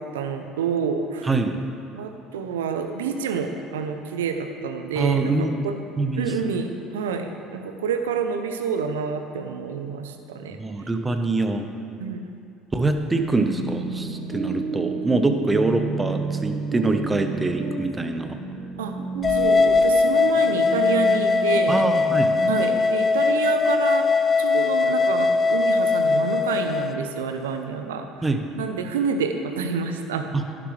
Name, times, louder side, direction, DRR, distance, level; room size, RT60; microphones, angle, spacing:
voice 1, 0.0-1.3 1.9-5.8 6.2-10.6 12.0-12.2 18.8-18.9 19.3-21.8 22.5-24.1 24.4-28.3 28.6-30.3, right 6 dB, 85° right, 6 dB, 0.6 m, -28 dB
voice 2, 1.3-1.6 5.0-5.6 6.0-6.3 10.6-11.7 12.7-18.4 21.7-22.3 28.2-28.4, right 2 dB, 20° right, 6 dB, 1.0 m, -24 dB
sound 1, 12.9-22.8, right 4 dB, 60° right, 1.1 m, -32 dB
sound 2, 19.2-26.9, left 4 dB, 30° left, 0.5 m, -20 dB
11.0 x 9.9 x 3.3 m, 2.5 s
hypercardioid pair, 70°, 0 cm